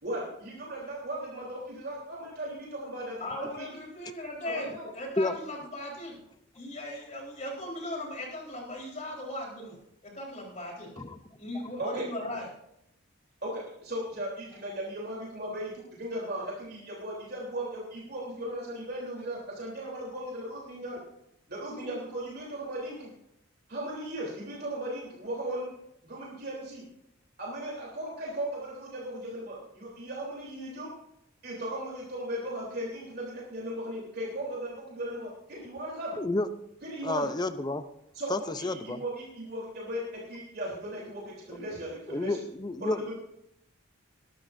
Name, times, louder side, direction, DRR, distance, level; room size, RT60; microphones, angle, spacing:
voice 1, 0.0-3.7 4.4-4.8 11.8-12.1 13.4-21.0 21.5-23.1 23.7-25.7 26.0-26.8 27.4-30.9 31.4-36.2 36.8-37.3 38.1-42.4 42.8-43.1, right 1 dB, 50° right, -4 dB, 3.5 m, -37 dB
voice 2, 3.2-6.2 6.5-10.9 11.4-12.5, left 1 dB, 35° left, -2 dB, 4.2 m, -38 dB
voice 3, 36.1-36.5 37.0-37.8 38.3-39.0 42.1-43.1, left 2 dB, 20° left, 11 dB, 0.6 m, -30 dB
21.0 x 12.5 x 2.6 m, 0.80 s
head